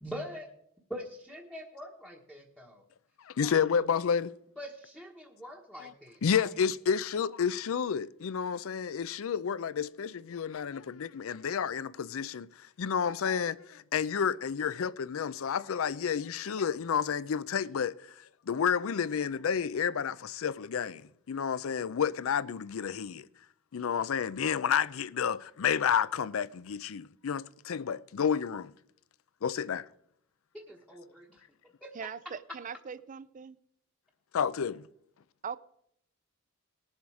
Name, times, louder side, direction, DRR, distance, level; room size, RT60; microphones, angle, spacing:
voice 1, 0.0-0.5 0.9-2.8 3.4-3.6 4.6-6.6 30.5-31.5 31.8-31.9, equal, 5° left, 1.2 m, -44 dB
voice 2, 3.2-4.3 5.8-5.9 6.2-23.3 23.7-28.7 29.4-29.9 34.3-34.9, left 7 dB, 70° left, 0.4 m, -30 dB
voice 3, 31.9-33.6 35.4-35.6, right 6 dB, 35° right, 0.4 m, -40 dB
19.0 x 7.2 x 4.8 m
head